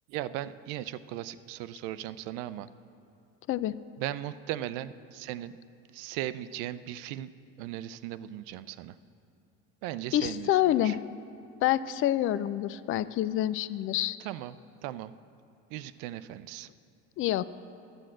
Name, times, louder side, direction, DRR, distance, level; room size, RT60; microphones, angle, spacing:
voice 1, 0.1-2.7 4.0-5.5 5.9-7.3 7.6-9.0 9.8-11.0 14.2-14.6 14.8-15.1 15.7-16.7, right 13 dB, 80° right, 14 dB, 0.5 m, -37 dB
voice 2, 10.1-11.0 11.6-14.2 17.2-17.4, left 13 dB, 40° left, 16 dB, 0.4 m, -27 dB
11.5 x 7.8 x 7.5 m, 2.6 s
supercardioid pair, 85°, 34 cm